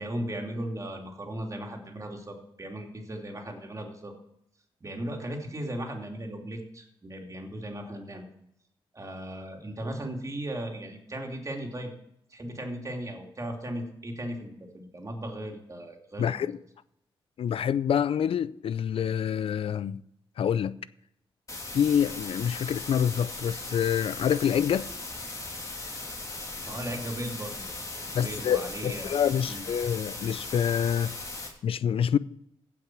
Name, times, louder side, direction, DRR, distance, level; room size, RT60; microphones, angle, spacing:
voice 1, 0.0-4.1 4.8-8.3 8.9-12.0 12.3-16.5 26.7-27.7 28.1-29.1 29.5-29.6, right 1 dB, 35° right, 2.8 m, -37 dB
voice 2, 16.2-16.6 17.4-20.0 20.4-20.8 21.7-24.9 28.1-31.1 31.6-32.2, left 8 dB, 70° left, 0.4 m, -26 dB
sound 1, 21.5-31.5, left 2 dB, 35° left, 3.1 m, -38 dB
16.0 x 6.0 x 6.1 m
cardioid pair, 75°, 10 cm